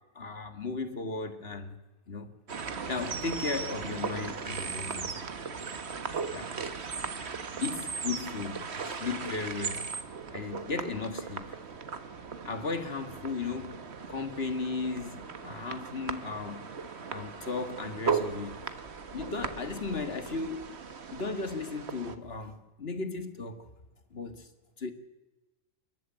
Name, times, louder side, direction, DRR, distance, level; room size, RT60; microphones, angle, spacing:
voice 1, 0.2-1.8 2.1-2.3 2.9-5.1 6.3-6.5 7.6-9.9 10.3-11.6 12.4-13.8 14.1-16.7 17.1-18.6 19.1-20.7 21.1-23.7 24.1-24.5 24.8-24.9, left 4 dB, 45° left, 2.1 m, -35 dB
sound 1, 2.5-22.2, right 5 dB, 50° right, 1.5 m, -37 dB
28.5 x 12.0 x 9.1 m
omnidirectional pair, 1.4 m